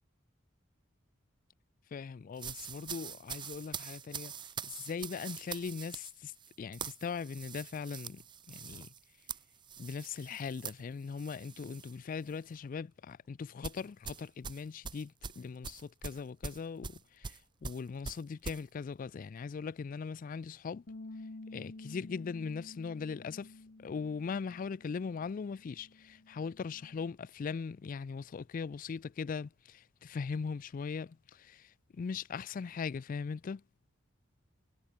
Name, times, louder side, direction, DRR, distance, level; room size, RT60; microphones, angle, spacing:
voice 1, 1.9-4.3 4.6-8.9 9.8-20.8 21.5-23.5 23.8-33.6, left 5 dB, 45° left, 0.3 m, -40 dB
sound 1, 2.4-12.0 12.3-12.6 13.6-18.6, right 6 dB, 25° right, 0.6 m, -44 dB
Bass guitar, 20.9-27.1, left 2 dB, 60° left, 1.1 m, -51 dB
head